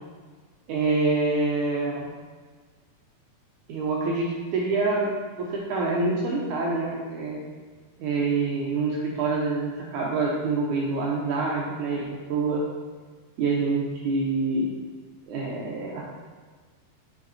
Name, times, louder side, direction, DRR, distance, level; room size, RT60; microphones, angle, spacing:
voice 1, 0.7-2.1 3.7-5.1 5.4-7.4 8.0-12.6 13.4-14.7 15.3-16.1, right 3 dB, 80° right, -3 dB, 1.7 m, -26 dB
7.7 x 5.2 x 4.0 m, 1.5 s
omnidirectional pair, 4.5 m